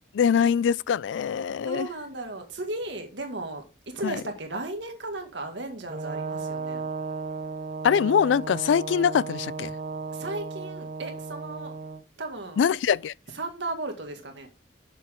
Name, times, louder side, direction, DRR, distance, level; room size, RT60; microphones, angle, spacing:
voice 1, 0.1-1.9 4.0-4.2 7.8-9.7 12.6-13.1, left 7 dB, 75° left, 0.3 m, -23 dB
voice 2, 1.7-6.9 10.1-11.7 12.2-12.6 13.3-14.5, right 2 dB, 70° right, 2.0 m, -35 dB
Brass instrument, 5.9-12.0, right 4 dB, 40° right, 0.5 m, -35 dB
7.5 x 7.0 x 3.7 m
head